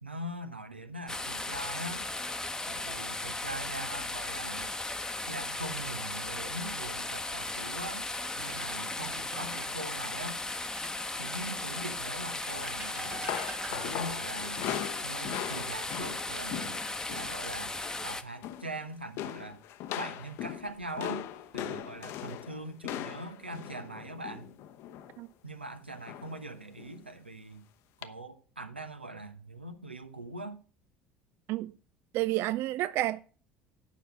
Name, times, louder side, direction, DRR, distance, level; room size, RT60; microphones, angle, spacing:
voice 1, 0.0-2.1 2.7-4.7 5.3-8.1 8.4-10.4 11.1-13.4 13.7-14.7 15.0-16.8 17.1-17.7 18.0-19.6 20.0-24.5 25.4-27.7 28.0-30.6, right 1 dB, 85° right, 0.8 m, -42 dB
sound 1, 1.1-18.2, left 2 dB, 10° left, 0.9 m, -36 dB
sound 2, 6.6-7.8 8.2-9.8 10.7-11.8 12.4-14.2 16.2-16.8 17.2-17.5 20.4-21.0 21.7-22.3, right 4 dB, 25° right, 1.6 m, -48 dB
sound 3, 12.9-17.4 17.7-18.0 18.3-18.8 19.2-25.2 26.0-26.4 26.8-26.9 28.0-28.1, left 11 dB, 55° left, 0.8 m, -39 dB
voice 2, 32.1-33.2, right 15 dB, 50° right, 0.4 m, -30 dB
9.9 x 6.0 x 5.6 m
figure-of-eight pair, 60°, 6 cm